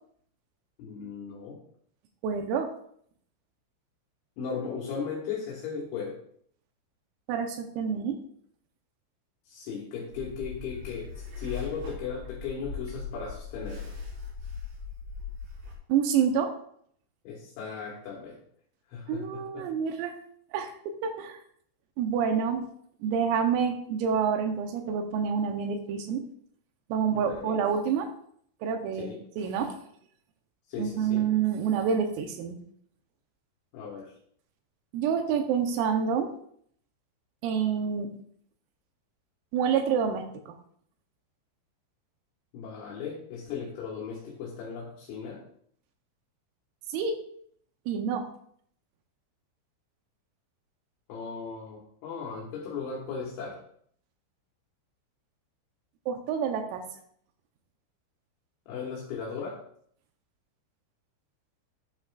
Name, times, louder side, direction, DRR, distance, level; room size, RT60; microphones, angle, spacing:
voice 1, 0.8-1.6 4.4-6.2 9.5-13.9 17.3-18.4 18.9-19.7 27.1-27.6 29.0-29.2 30.7-31.3 33.7-34.1 42.5-45.4 51.1-53.6 58.7-59.6, left 6 dB, 70° left, -2 dB, 3.5 m, -37 dB
voice 2, 2.2-2.7 7.3-8.2 15.9-16.5 19.1-20.2 20.5-21.4 22.0-22.7 23.0-26.2 26.9-28.1 28.6-29.8 30.8-32.6 34.9-36.3 37.4-38.1 39.5-40.6 46.9-47.2 47.9-48.3 56.1-56.8, right 7 dB, 85° right, 5 dB, 3.5 m, -28 dB
sound 1, 10.1-15.7, left 5 dB, 65° right, 5.2 m, -39 dB
13.0 x 9.2 x 2.4 m, 0.64 s
omnidirectional pair, 6.0 m